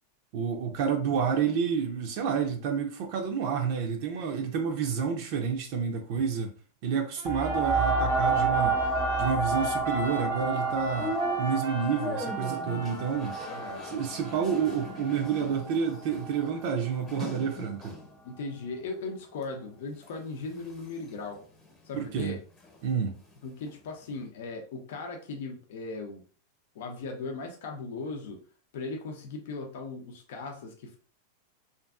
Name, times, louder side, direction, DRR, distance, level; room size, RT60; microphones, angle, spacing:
voice 1, 0.3-6.5 6.8-8.8 9.2-13.4 13.8-18.0 21.9-22.4 22.8-23.2, right 6 dB, 55° right, 0.5 m, -29 dB
Trumpet, 7.2-15.3, right 1 dB, 85° right, 0.8 m, -42 dB
sound 1, 7.3-16.5 17.1-17.2, right 3 dB, 10° left, 0.5 m, -30 dB
sound 2, 10.4-18.2 18.7-19.5 19.9-22.8 23.1-24.3, left 1 dB, 25° left, 0.9 m, -41 dB
voice 2, 13.5-13.9 18.2-21.4 21.8-22.4 23.4-26.2 26.7-28.4 28.7-31.0, left 3 dB, 70° left, 0.6 m, -38 dB
2.5 x 2.4 x 2.3 m
supercardioid pair, 135°, 0 cm